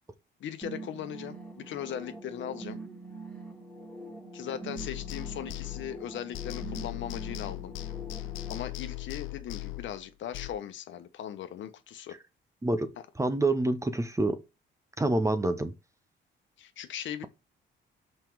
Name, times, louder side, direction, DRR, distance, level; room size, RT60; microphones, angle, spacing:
voice 1, 0.4-2.8 4.3-7.7 8.5-12.2 13.0-13.1 16.6-17.3, left 10 dB, 70° left, 1.1 m, -39 dB
sound 1, 0.6-8.6, right 3 dB, 5° left, 2.1 m, -44 dB
sound 2, 4.8-6.1 6.3-10.5, left 19 dB, 90° left, 0.6 m, -39 dB
voice 2, 13.2-14.4 15.0-15.7, right 2 dB, 15° right, 1.0 m, -27 dB
5.8 x 5.3 x 4.6 m
cardioid pair, 90°, 20 cm